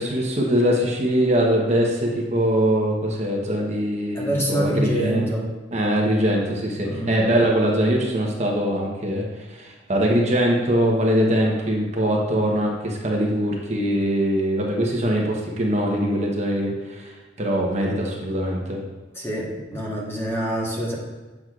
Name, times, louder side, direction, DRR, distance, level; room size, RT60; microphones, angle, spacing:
voice 1, 0.0-5.2 5.7-17.1 17.4-18.8, equal, 40° right, -1 dB, 1.0 m, -22 dB
voice 2, 4.1-5.5 6.8-7.1 19.1-21.0, equal, 15° left, -4 dB, 1.2 m, -26 dB
7.7 x 6.2 x 2.4 m, 1.2 s
head